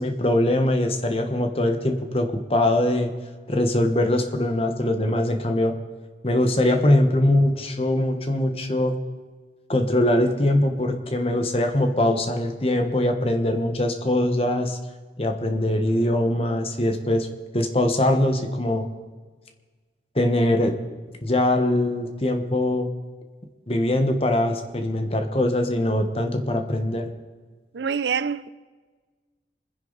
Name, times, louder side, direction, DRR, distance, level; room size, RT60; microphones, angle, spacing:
voice 1, 0.0-3.1 3.5-5.7 6.2-9.0 9.7-14.8 15.2-17.3 17.5-18.8 20.1-20.7 21.2-22.9 23.7-27.1, left 1 dB, 35° left, 1.3 m, -22 dB
voice 2, 27.7-28.5, right 6 dB, 80° right, 0.5 m, -25 dB
25.0 x 10.5 x 4.1 m
head